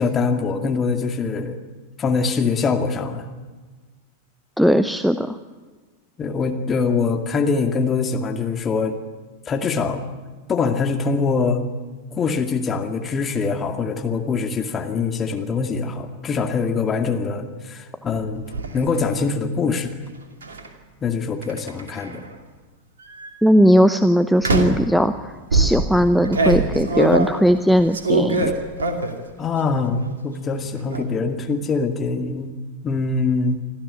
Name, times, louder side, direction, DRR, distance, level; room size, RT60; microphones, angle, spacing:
voice 1, 0.0-1.6 2.0-3.2 6.2-9.0 9.5-10.0 10.5-11.6 12.1-18.4 18.7-19.9 21.0-22.2 29.4-32.5 32.8-33.6, left 4 dB, 20° left, 4 dB, 2.2 m, -23 dB
voice 2, 4.6-5.4 23.4-28.5, equal, ahead, 12 dB, 0.7 m, -18 dB
sound 1, 18.1-18.7 20.4-20.7 21.4-22.3 23.0-23.3 24.4-24.9 25.5-29.3 29.6-30.2 30.4-31.0, right 3 dB, 70° right, 2.6 m, -23 dB
25.5 x 13.5 x 9.9 m, 1.3 s
figure-of-eight pair, 90°, 0 cm